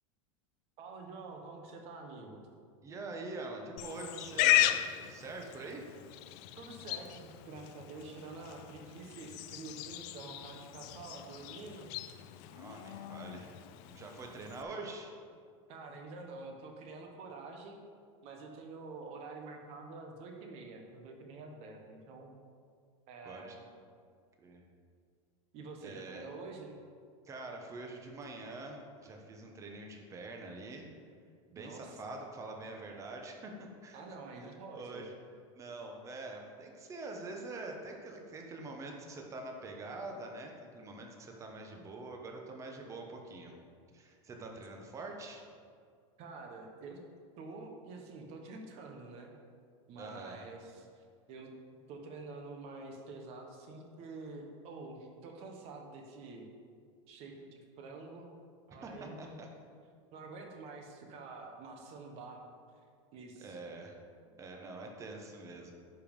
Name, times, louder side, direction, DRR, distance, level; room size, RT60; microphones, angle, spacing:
voice 1, 0.8-2.5 6.6-11.9 15.7-17.8 18.2-22.4 23.1-23.6 25.5-26.7 31.5-31.9 33.9-35.1 44.4-44.6 46.2-47.0 47.4-49.3 49.9-56.5 57.1-58.3 58.7-59.4 60.1-62.5 63.1-63.6, right 3 dB, 40° right, 3 dB, 1.2 m, -47 dB
voice 2, 2.8-5.8 12.4-13.6 13.9-15.1 23.2-23.5 24.4-24.6 25.8-26.3 27.2-30.9 31.5-34.0 34.3-35.1 35.5-43.5 43.9-45.4 50.0-50.5 58.8-59.5 63.4-63.9 64.4-65.7, right 2 dB, 20° right, 2 dB, 1.1 m, -45 dB
Livestock farm animals working animals, 3.8-14.6, left 14 dB, 50° left, 0.4 m, -36 dB
10.0 x 5.3 x 5.4 m, 2.2 s
supercardioid pair, 160°, 16 cm